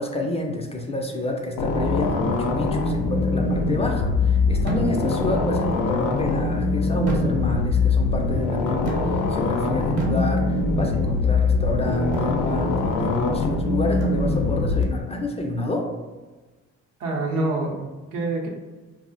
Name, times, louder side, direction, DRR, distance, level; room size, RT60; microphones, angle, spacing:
voice 1, 0.0-15.9, left 1 dB, 20° left, 2 dB, 0.3 m, -29 dB
sound 1, 1.6-14.8, left 3 dB, 80° left, 0.5 m, -23 dB
sound 2, 4.7-5.3 7.1-7.8 8.8-9.4 10.0-10.8 12.1-12.5 14.0-14.6, equal, 55° right, 0.9 m, -30 dB
voice 2, 17.0-18.5, right 2 dB, 85° right, 0 dB, 0.7 m, -26 dB
2.4 x 2.0 x 3.8 m, 1.3 s
cardioid pair, 90°, 30 cm